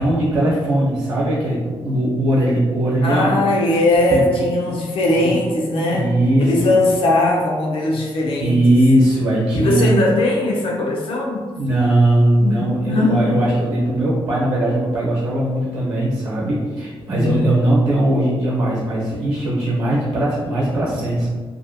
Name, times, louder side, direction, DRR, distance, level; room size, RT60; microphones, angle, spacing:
voice 1, 0.0-3.4 4.1-4.2 5.2-5.3 5.9-6.7 8.4-9.9 11.6-21.3, right 1 dB, 60° right, -6 dB, 0.8 m, -19 dB
voice 2, 3.0-8.6 9.6-11.4 12.4-13.4 17.1-17.5, left 2 dB, 85° left, -1 dB, 0.6 m, -19 dB
2.6 x 2.2 x 2.6 m, 1.4 s
wide cardioid pair, 165°, 9 cm